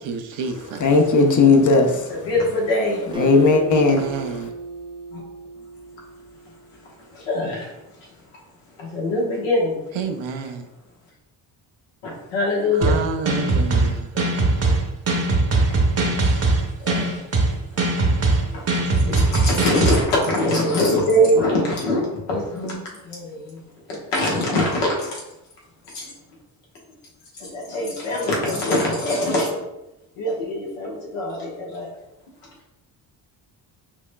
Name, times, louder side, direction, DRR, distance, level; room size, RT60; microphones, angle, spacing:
voice 1, 0.0-0.9 3.7-4.5 9.9-10.7 12.7-14.1, right 5 dB, 65° right, 0.6 m, -29 dB
voice 2, 0.8-2.2 3.2-4.0, left 3 dB, 40° left, 0.7 m, -16 dB
voice 3, 2.2-3.0 5.1-5.2 7.1-7.7 8.8-9.8 12.0-13.0 16.8-17.2 18.5-22.0 22.3-23.6 23.9-25.2 25.9-26.1 27.4-29.6 30.2-31.9, left 1 dB, 80° left, 1.2 m, -23 dB
Acoustic guitar, 3.1-6.6, right 5 dB, 10° right, 0.3 m, -33 dB
sound 1, 12.8-20.0, right 2 dB, 30° right, 0.8 m, -20 dB
5.8 x 2.2 x 2.2 m
supercardioid pair, 50°, 50 cm